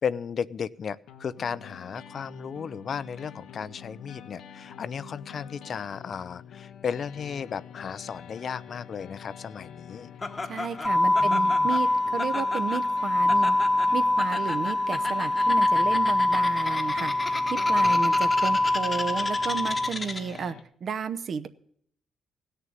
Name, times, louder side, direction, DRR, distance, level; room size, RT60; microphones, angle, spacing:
voice 1, 0.0-10.1 11.2-11.7 17.8-18.0, left 7 dB, 50° left, 17 dB, 0.5 m, -35 dB
sound 1, 1.1-20.6, left 8 dB, 80° left, 1.0 m, -46 dB
Laughter, 10.2-20.4, left 3 dB, 30° left, 1.1 m, -36 dB
voice 2, 10.4-13.6 13.9-17.1 17.5-20.5 20.8-21.5, right 6 dB, 55° right, 10 dB, 0.8 m, -32 dB
sound 2, 10.8-19.9, left 2 dB, 5° left, 0.6 m, -24 dB
17.0 x 6.7 x 9.0 m, 0.68 s
cardioid pair, 90°, 0 cm